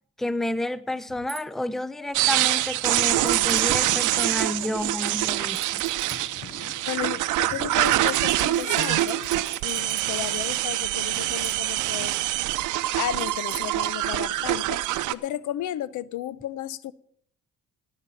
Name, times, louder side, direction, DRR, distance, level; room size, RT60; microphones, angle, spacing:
voice 1, 0.2-5.8, left 1 dB, ahead, 0.6 m, -30 dB
sound 1, 1.3-1.4 3.3-3.9 5.5-6.2 7.8-10.3 11.4-11.9 13.2-13.9, right 11 dB, 60° right, 1.1 m, -40 dB
sound 2, 2.1-15.1, right 15 dB, 85° right, 0.7 m, -25 dB
sound 3, 2.6-8.1, left 8 dB, 50° left, 0.8 m, -46 dB
voice 2, 6.8-9.2 9.6-12.1 13.0-14.8 15.1-16.9, left 12 dB, 75° left, 0.7 m, -33 dB
18.0 x 7.5 x 5.6 m
cardioid pair, 90°, 30 cm